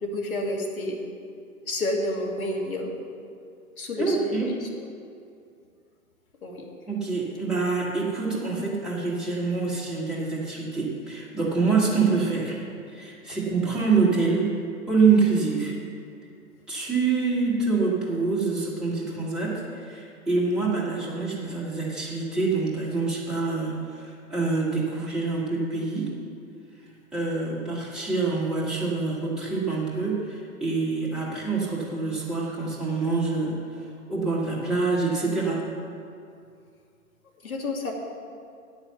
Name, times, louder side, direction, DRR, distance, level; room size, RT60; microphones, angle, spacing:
voice 1, 0.0-1.0 1.7-2.9 3.8-4.7 6.4-6.7 13.3-13.4 37.4-37.9, left 1 dB, 75° left, -1 dB, 2.4 m, -29 dB
voice 2, 4.0-4.5 6.9-12.6 12.9-14.5 14.9-15.7 16.7-26.1 27.1-33.6 34.1-35.6, right 4 dB, ahead, -6 dB, 1.6 m, -26 dB
9.2 x 9.0 x 6.9 m, 2.4 s
figure-of-eight pair, 115°, 43 cm